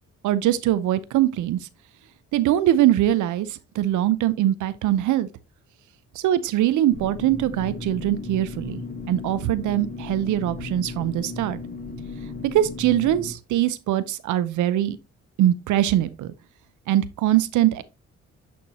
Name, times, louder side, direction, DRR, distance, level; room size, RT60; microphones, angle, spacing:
voice 1, 0.2-1.6 2.3-5.3 6.1-8.8 9.1-11.6 12.4-15.0 15.4-16.3 16.9-17.8, right 13 dB, 80° right, 0.6 m, -22 dB
sound 1, 6.9-13.3, left 3 dB, 30° left, 1.6 m, -36 dB
9.2 x 4.4 x 2.9 m
cardioid pair, 90°, 30 cm